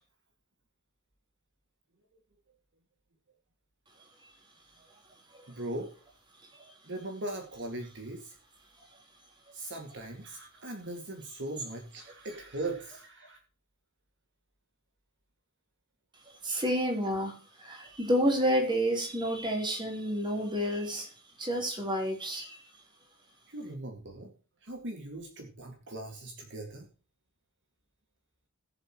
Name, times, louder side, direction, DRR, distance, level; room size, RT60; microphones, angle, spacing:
voice 1, 5.5-5.9 6.9-8.3 9.5-13.4 16.5-16.6 23.5-24.3 24.6-26.8, right 2 dB, 55° right, 2 dB, 2.2 m, -39 dB
voice 2, 16.4-17.3 17.6-21.1 21.4-22.6, equal, 20° right, 1 dB, 3.7 m, -29 dB
19.5 x 7.4 x 3.1 m, 0.37 s
head